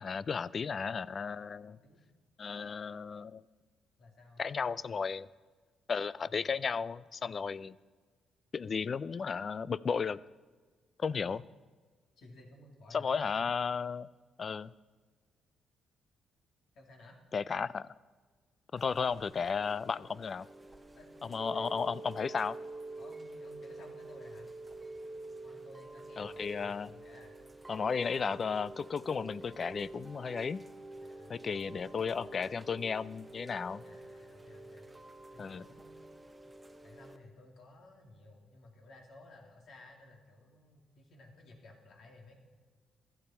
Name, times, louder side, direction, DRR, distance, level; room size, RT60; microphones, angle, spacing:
voice 1, 0.0-1.8 2.4-3.4 4.4-5.3 5.9-7.8 8.5-10.2 11.0-11.4 12.9-14.1 14.4-14.7 17.3-17.9 18.7-20.5 21.2-22.6 26.2-26.9 27.7-30.6 31.3-33.8 35.4-35.6, left 5 dB, 40° left, 19 dB, 0.4 m, -34 dB
voice 2, 1.7-2.0 4.0-4.4 6.2-6.6 12.2-13.5 16.7-17.2 20.9-21.7 23.0-24.5 25.4-27.3 31.0-32.5 33.8-34.9 35.3-36.1 36.8-42.3, left 2 dB, 65° left, 1 dB, 2.7 m, -56 dB
Chime / Rain, 18.8-37.2, right 2 dB, 15° right, 1.0 m, -48 dB
15.5 x 11.5 x 4.4 m, 1.4 s
cardioid pair, 90°, 0 cm